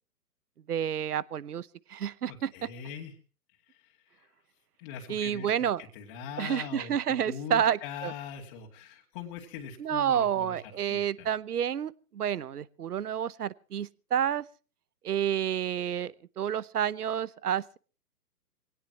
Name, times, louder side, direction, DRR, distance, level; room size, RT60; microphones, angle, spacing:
voice 1, 0.7-2.5 5.1-5.8 6.4-8.1 9.8-14.4 15.0-17.8, right 9 dB, 65° right, 22 dB, 0.9 m, -29 dB
voice 2, 2.3-3.1 3.7-4.3 4.8-11.3, left 7 dB, 30° left, -1 dB, 2.5 m, -42 dB
24.0 x 18.0 x 2.9 m, 0.37 s
figure-of-eight pair, 130°, 49 cm